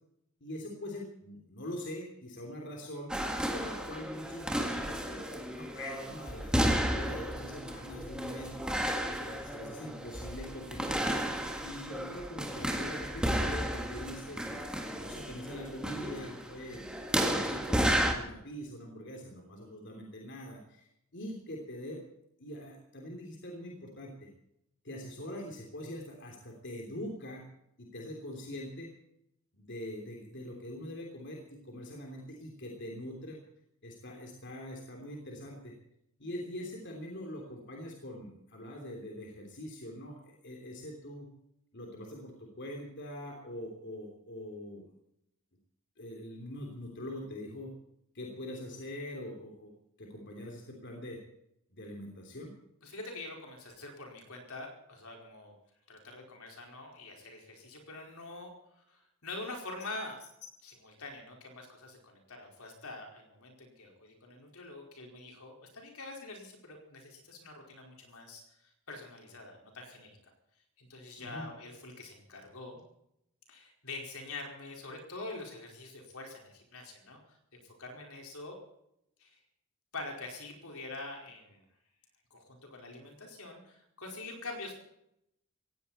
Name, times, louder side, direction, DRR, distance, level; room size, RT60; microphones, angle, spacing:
voice 1, 0.4-3.1 3.5-8.5 9.1-11.0 11.6-16.9 17.2-22.0 22.4-24.3 24.8-27.4 27.8-28.9 29.5-33.4 33.8-35.7 36.2-41.3 41.7-44.8 46.0-47.7 48.1-49.7 50.0-51.2 51.7-52.5 71.2-71.5, left 1 dB, 55° left, 1 dB, 3.1 m, -43 dB
sound 1, 3.1-18.1, equal, 5° right, 1.9 m, -33 dB
voice 2, 52.8-55.5 55.9-70.1 70.8-72.8 73.5-78.6 79.2-79.4 79.9-81.6 82.3-84.7, left 2 dB, 75° left, 1 dB, 4.8 m, -45 dB
18.0 x 17.0 x 4.3 m, 0.78 s
head